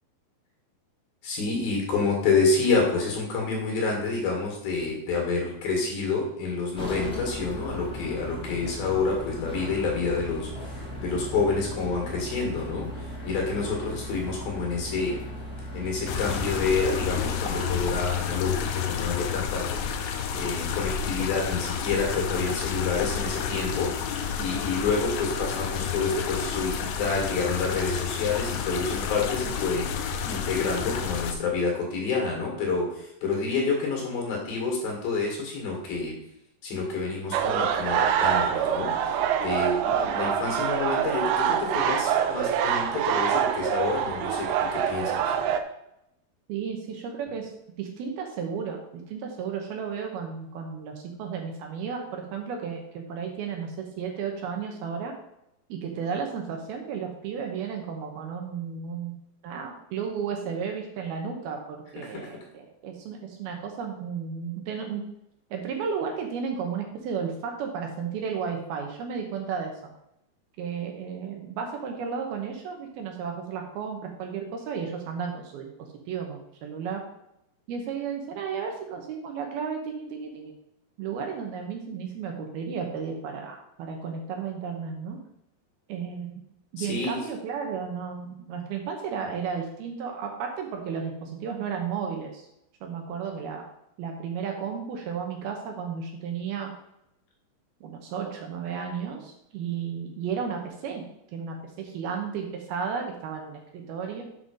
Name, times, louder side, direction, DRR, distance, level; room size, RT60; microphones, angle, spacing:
voice 1, 1.2-15.2 15.7-19.7 20.3-36.2 36.6-45.2 62.0-62.3 86.8-87.2, left 4 dB, 60° left, 0 dB, 3.6 m, -28 dB
sound 1, 6.8-17.7, left 1 dB, ahead, 1.2 m, -37 dB
sound 2, 16.1-31.3, left 7 dB, 80° left, 3.0 m, -30 dB
sound 3, 37.3-45.6, right 8 dB, 90° right, 3.0 m, -25 dB
voice 2, 46.5-47.5 47.8-55.1 55.7-59.2 59.4-65.0 65.5-69.7 70.6-77.0 77.7-80.5 81.0-85.2 85.9-86.4 86.7-92.5 92.8-93.7 94.0-96.7 97.8-101.0 101.3-104.2, right 6 dB, 70° right, 2 dB, 2.7 m, -33 dB
7.8 x 5.9 x 5.3 m, 0.81 s
omnidirectional pair, 5.0 m